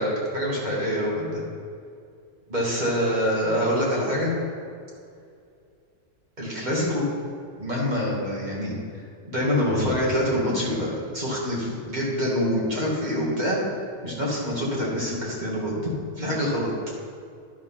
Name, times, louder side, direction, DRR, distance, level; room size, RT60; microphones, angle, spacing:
voice 1, 0.0-1.4 2.5-4.3 6.4-7.1 7.6-8.7 9.3-13.6 14.0-15.8 16.2-16.7, equal, 25° right, -5 dB, 2.3 m, -25 dB
13.0 x 5.0 x 5.7 m, 2.4 s
omnidirectional pair, 1.8 m